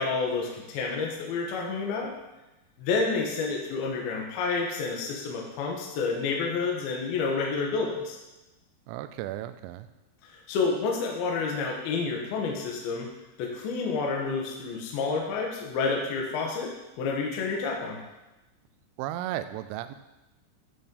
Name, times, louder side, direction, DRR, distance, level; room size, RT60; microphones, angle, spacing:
voice 1, 0.0-2.1 2.8-8.2 10.3-13.1 13.4-16.7 17.0-18.0, left 4 dB, 65° left, 0 dB, 2.6 m, -29 dB
voice 2, 8.9-9.9 19.0-20.0, right 13 dB, 85° right, 11 dB, 3.0 m, -34 dB
11.0 x 4.2 x 5.3 m, 1.0 s
omnidirectional pair, 5.7 m